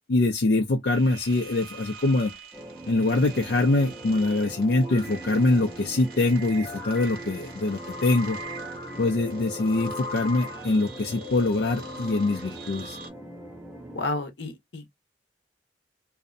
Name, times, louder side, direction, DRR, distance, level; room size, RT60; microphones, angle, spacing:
voice 1, 0.1-2.3 2.9-8.4 9.0-13.0, left 2 dB, 65° left, 0.5 m, -24 dB
sound 1, 0.9-13.1, left 1 dB, 55° right, 1.1 m, -41 dB
sound 2, 2.5-14.0, right 2 dB, 10° right, 0.5 m, -41 dB
voice 2, 13.9-14.9, left 2 dB, 90° left, 0.8 m, -31 dB
2.6 x 2.1 x 2.4 m
head